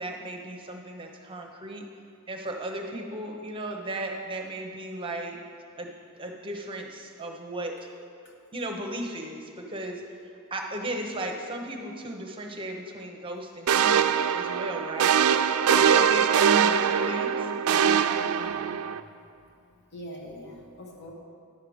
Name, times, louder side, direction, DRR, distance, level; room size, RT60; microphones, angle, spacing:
voice 1, 0.0-1.8 2.3-5.4 5.8-7.7 8.5-15.1 15.7-17.5, right 1 dB, 25° right, 2 dB, 0.8 m, -35 dB
sound 1, 13.7-19.0, right 8 dB, 80° right, 0.4 m, -22 dB
voice 2, 18.3-19.3 19.9-21.1, equal, 50° left, -1 dB, 1.4 m, -44 dB
10.5 x 6.6 x 5.0 m, 2.4 s
head